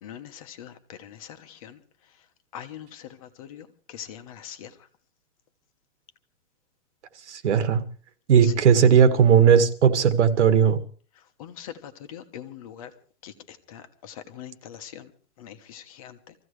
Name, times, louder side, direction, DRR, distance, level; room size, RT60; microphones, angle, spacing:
voice 1, 0.0-1.8 2.5-4.8 8.4-8.5 11.4-12.9 13.2-15.1 15.4-16.3, left 10 dB, 30° left, 1.2 m, -42 dB
voice 2, 7.3-7.8 8.3-10.8, right 7 dB, 75° right, 2.0 m, -17 dB
26.0 x 15.5 x 3.3 m
hypercardioid pair, 175°, 35 cm